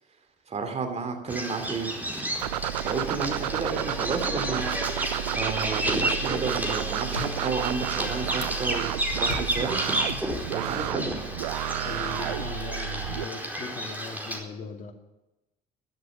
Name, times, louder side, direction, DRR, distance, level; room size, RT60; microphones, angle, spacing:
voice 1, 0.5-1.9 2.8-4.7 5.3-9.8 10.1-10.2 10.5-11.1, right 4 dB, 35° right, 6 dB, 2.9 m, -32 dB
Bird vocalization bird call bird song, 1.3-14.4, right 1 dB, 10° right, 4.5 m, -31 dB
sound 1, 2.4-13.2, right 13 dB, 75° right, 0.5 m, -31 dB
sound 2, 6.8-12.2, left 5 dB, 80° left, 1.4 m, -43 dB
voice 2, 11.8-14.9, left 4 dB, 40° left, 5 dB, 2.5 m, -39 dB
13.0 x 11.5 x 8.5 m, 0.97 s
figure-of-eight pair, 50°, 20 cm